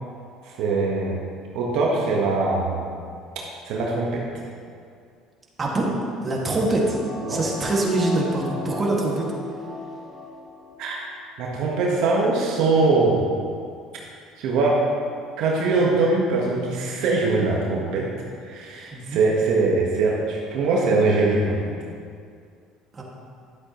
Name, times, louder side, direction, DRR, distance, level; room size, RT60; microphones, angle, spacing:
voice 1, 0.4-1.2 1.5-2.9 3.6-4.2 7.3-7.4 10.8-11.1 11.4-13.3 14.4-14.8 15.4-18.1 18.4-21.7, right 3 dB, 70° right, -2 dB, 1.4 m, -22 dB
voice 2, 5.6-5.9 6.2-7.0 7.3-9.3 18.9-19.2 22.9-23.0, right 2 dB, 30° right, -3 dB, 2.1 m, -24 dB
sound 1, 6.0-10.8 11.1-11.2, left 2 dB, 15° left, 1.8 m, -35 dB
11.5 x 7.9 x 3.1 m, 2.2 s
supercardioid pair, 90°, 0 cm